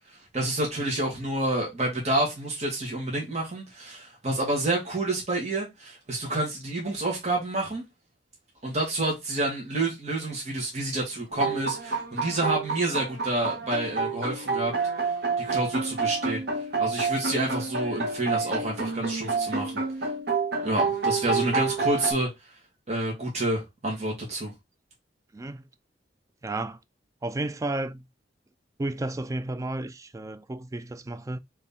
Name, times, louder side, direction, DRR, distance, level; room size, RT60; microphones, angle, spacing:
voice 1, 0.3-7.9 8.6-14.7 15.4-16.4 16.8-19.8 20.6-22.3 22.9-24.5, right 2 dB, 40° right, 1.6 m, -28 dB
sound 1, 11.3-22.1, right 4 dB, 65° right, 1.2 m, -29 dB
voice 2, 25.3-25.6 26.4-26.8 27.2-28.0 28.8-31.4, right 2 dB, 20° right, 0.3 m, -32 dB
4.2 x 3.3 x 3.5 m
head